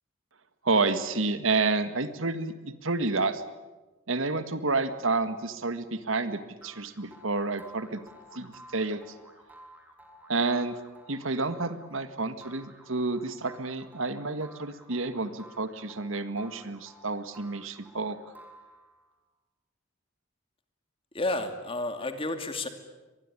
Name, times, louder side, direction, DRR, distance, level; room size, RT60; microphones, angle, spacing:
voice 1, 0.6-3.4 4.1-8.0 8.3-9.0 10.3-10.7 11.1-18.2, right 3 dB, 80° right, 11 dB, 1.8 m, -29 dB
sound 1, 6.6-19.1, right 1 dB, 10° right, 3.5 m, -53 dB
voice 2, 21.1-22.7, left 2 dB, 25° left, 7 dB, 2.5 m, -31 dB
24.5 x 21.0 x 9.9 m, 1.2 s
head